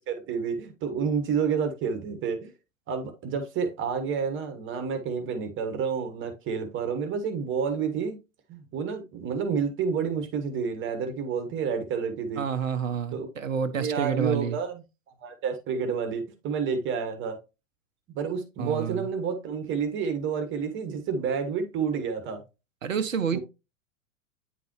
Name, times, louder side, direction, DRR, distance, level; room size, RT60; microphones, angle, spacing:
voice 1, 0.0-2.5 2.9-8.2 8.5-12.4 13.1-13.3 13.8-14.8 15.2-17.4 18.1-22.4 23.3-23.4, right 6 dB, 30° right, 1.5 m, -29 dB
voice 2, 12.4-14.6 18.6-19.1 22.8-23.4, right 7 dB, 80° right, 0.9 m, -29 dB
9.4 x 4.0 x 3.1 m
figure-of-eight pair, 95°, 39 cm